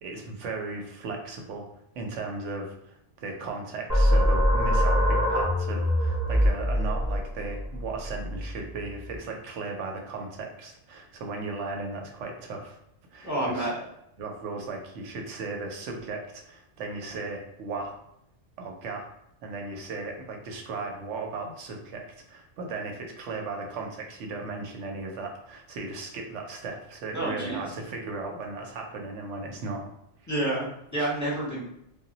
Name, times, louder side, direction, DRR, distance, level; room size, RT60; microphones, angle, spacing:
voice 1, 0.0-1.7 2.0-12.8 13.1-13.7 14.2-17.9 18.6-19.1 19.4-29.8, right 3 dB, 85° right, 2 dB, 0.9 m, -36 dB
sound 1, 3.9-9.2, equal, 15° right, 0.7 m, -24 dB
voice 2, 13.2-13.8 27.1-27.6 30.3-31.6, right 1 dB, 20° left, -6 dB, 0.6 m, -29 dB
2.1 x 2.1 x 3.8 m, 0.80 s
omnidirectional pair, 1.2 m